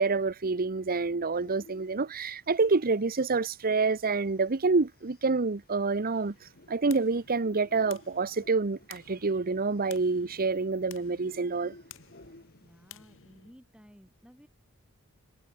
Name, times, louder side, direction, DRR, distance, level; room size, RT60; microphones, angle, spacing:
voice 1, 0.0-6.3 6.7-11.7, right 4 dB, 45° right, 0.9 m, -27 dB
sound 1, 1.3-12.9, left 1 dB, 45° left, 5.6 m, -57 dB
sound 2, 6.1-13.5, left 9 dB, 65° left, 2.1 m, -54 dB
voice 2, 12.6-14.5, equal, 5° right, 4.0 m, -56 dB
head